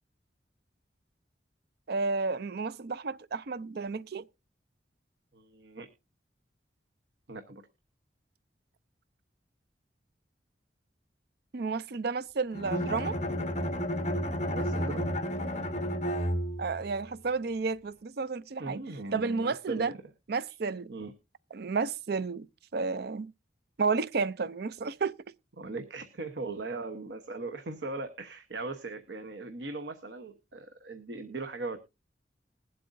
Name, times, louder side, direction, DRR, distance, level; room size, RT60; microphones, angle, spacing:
voice 1, 1.9-4.3 11.5-13.2 16.6-18.8 19.1-19.9 20.3-20.9 21.5-22.5 22.7-23.3 23.8-25.1, right 4 dB, 60° right, 0.5 m, -31 dB
voice 2, 5.3-5.9 7.3-7.6 14.4-15.1 18.6-20.0 20.9-21.1 25.6-31.8, right 3 dB, 80° right, 1.0 m, -39 dB
Bowed string instrument, 12.5-16.8, equal, 40° left, 1.3 m, -31 dB
21.0 x 7.7 x 2.6 m
head